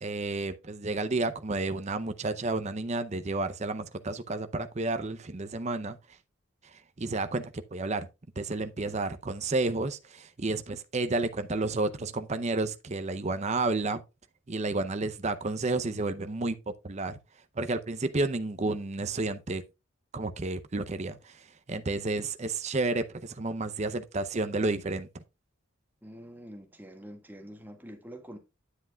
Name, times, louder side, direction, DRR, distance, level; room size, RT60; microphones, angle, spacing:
voice 1, 0.0-6.0 6.7-7.4 7.7-8.1 8.4-14.0 14.5-17.2 17.6-19.6 20.1-25.1, right 2 dB, 35° right, 0.6 m, -31 dB
voice 2, 26.0-28.4, equal, 10° right, 1.7 m, -46 dB
9.8 x 7.9 x 2.3 m
head